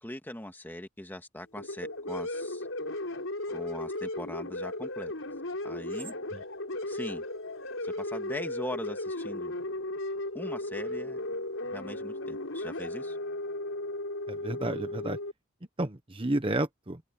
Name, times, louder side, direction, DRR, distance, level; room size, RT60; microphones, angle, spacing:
voice 1, 0.0-2.7 3.5-5.1 5.6-6.1 6.9-7.2 7.8-9.6 10.3-11.2 11.7-13.2, left 1 dB, 10° left, 1.9 m, -41 dB
sound 1, 1.6-15.3, left 1 dB, 75° left, 4.8 m, -35 dB
voice 2, 14.3-15.2 15.8-17.0, right 1 dB, 25° right, 1.0 m, -31 dB
head